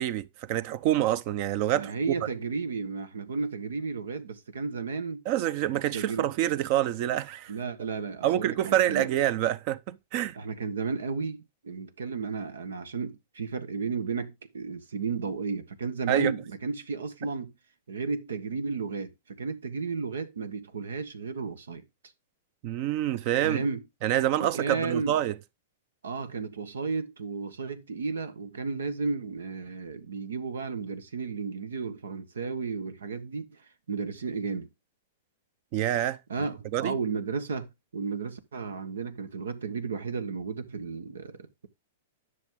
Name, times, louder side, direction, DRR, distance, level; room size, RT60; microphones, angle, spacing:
voice 1, 0.0-1.9 5.3-7.5 8.2-10.4 16.1-16.3 22.6-23.6 24.0-25.3 35.7-36.2 36.7-36.9, right 12 dB, 50° right, 0.7 m, -27 dB
voice 2, 1.7-5.2 5.9-6.3 7.5-9.1 10.3-17.5 17.9-21.8 23.4-23.8 24.4-25.1 26.0-33.6 33.9-34.7 36.3-41.7, right 4 dB, 90° right, 1.3 m, -33 dB
10.5 x 6.2 x 3.7 m
hypercardioid pair, 125°, 0 cm